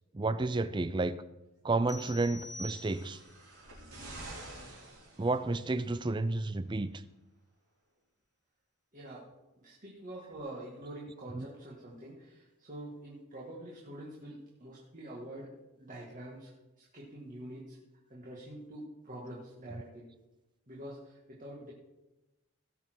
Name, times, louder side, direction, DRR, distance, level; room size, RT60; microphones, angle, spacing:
voice 1, 0.1-1.1 1.6-3.2 5.2-6.9 11.3-11.5, right 2 dB, 20° right, 14 dB, 0.4 m, -31 dB
sound 1, 1.9-3.4, left 1 dB, ahead, 1.0 m, -46 dB
sound 2, 2.5-5.8 6.8-6.9, right 2 dB, 90° right, 4.5 m, -48 dB
voice 2, 8.9-9.3 9.6-16.5 16.8-17.8 18.1-20.1 20.7-21.7, right 1 dB, 35° right, -5 dB, 2.0 m, -46 dB
18.0 x 6.8 x 4.6 m, 1.0 s
head